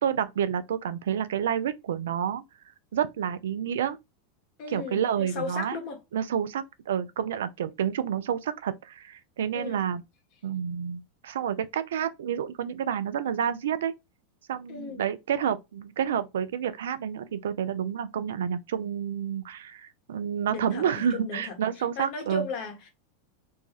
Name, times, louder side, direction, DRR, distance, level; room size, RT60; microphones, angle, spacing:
voice 1, 0.0-2.4 2.9-4.0 4.7-5.8 6.1-10.0 10.4-13.9 14.5-22.5, right 8 dB, 80° right, 0.4 m, -29 dB
voice 2, 4.6-6.0 9.5-9.8 14.7-15.0 20.5-21.5 22.0-22.9, left 4 dB, 55° left, 1.0 m, -36 dB
2.6 x 2.2 x 3.1 m
hypercardioid pair, 105°, 0 cm